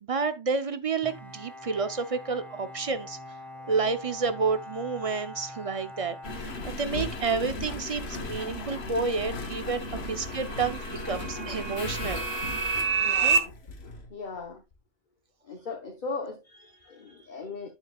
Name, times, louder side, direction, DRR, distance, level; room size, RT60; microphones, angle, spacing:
voice 1, 0.0-3.2 3.7-12.3 13.0-13.4, right 4 dB, 40° right, 0.5 m, -30 dB
Bowed string instrument, 1.0-7.2, left 1 dB, ahead, 1.4 m, -44 dB
Engine, 6.2-14.1 14.7-14.8, left 2 dB, 70° left, 1.4 m, -36 dB
sound 1, 9.1-13.4, right 5 dB, 90° right, 1.1 m, -29 dB
voice 2, 13.0-13.5 13.8-14.6 15.4-17.7, left 4 dB, 50° left, 1.0 m, -38 dB
8.9 x 6.9 x 2.3 m
omnidirectional pair, 1.1 m